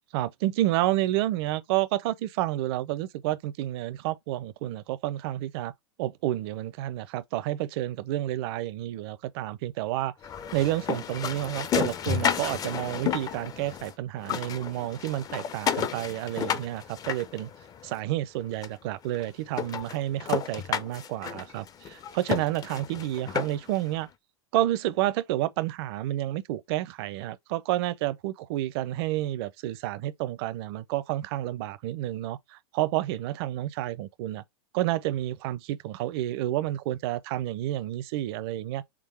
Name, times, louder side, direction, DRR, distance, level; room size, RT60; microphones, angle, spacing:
voice 1, 0.1-5.7 6.0-10.1 10.5-17.5 17.8-24.1 24.5-34.4 34.7-38.8, right 14 dB, 55° right, 0.6 m, -30 dB
sound 1, 10.2-13.9 14.2-17.9 18.6-18.7 19.1-19.2 19.5-23.8, left 8 dB, 25° left, 0.5 m, -32 dB
3.7 x 3.6 x 3.2 m
hypercardioid pair, 120°, 15 cm